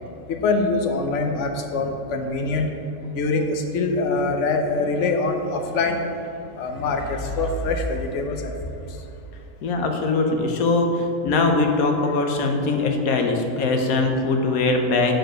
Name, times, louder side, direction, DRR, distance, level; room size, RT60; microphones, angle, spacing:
voice 1, 0.3-2.7 3.1-6.3 6.5-9.0 12.8-12.9, left 3 dB, 60° left, 4 dB, 1.0 m, -24 dB
voice 2, 9.6-15.1, left 3 dB, 80° left, 3 dB, 1.3 m, -21 dB
6.7 x 4.8 x 6.2 m, 2.9 s
omnidirectional pair, 1.5 m